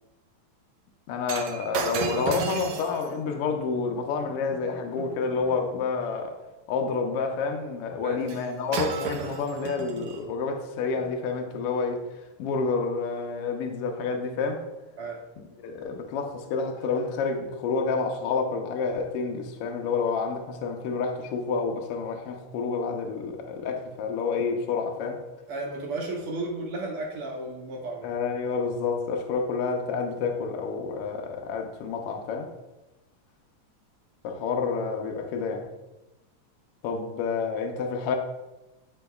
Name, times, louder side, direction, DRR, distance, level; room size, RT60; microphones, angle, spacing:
voice 1, 1.1-6.3 6.7-12.0 12.4-14.6 15.6-25.2 28.0-32.5 34.2-35.6 36.8-38.2, left 4 dB, 70° left, 1.4 m, -29 dB
Shatter, 1.3-5.6 8.3-8.5 8.7-10.2 11.0-11.1, right 6 dB, 85° right, 2.0 m, -35 dB
voice 2, 25.5-28.1, right 2 dB, 65° right, 1.4 m, -33 dB
10.5 x 3.9 x 2.3 m
omnidirectional pair, 3.4 m